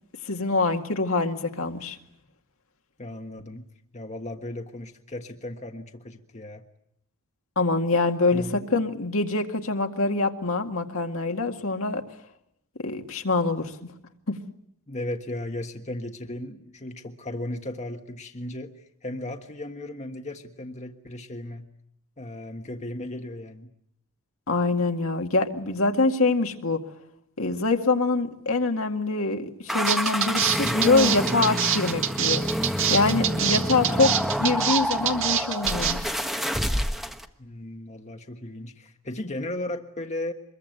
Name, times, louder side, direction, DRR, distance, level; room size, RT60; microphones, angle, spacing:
voice 1, 0.2-2.0 7.6-12.0 12.8-13.7 14.3-14.4 24.5-26.8 27.4-32.4 32.9-34.1 34.4-36.1, left 3 dB, 65° left, 4 dB, 2.1 m, -24 dB
voice 2, 3.0-3.7 3.9-6.6 8.3-8.7 14.9-21.6 22.2-23.7 33.5-34.1 37.4-40.3, left 1 dB, 30° left, 4 dB, 1.5 m, -36 dB
sound 1, 29.7-37.3, equal, ahead, 1.3 m, -28 dB
sound 2, 29.9-35.9, right 9 dB, 65° right, 2.0 m, -25 dB
25.0 x 22.0 x 9.2 m, 0.76 s
head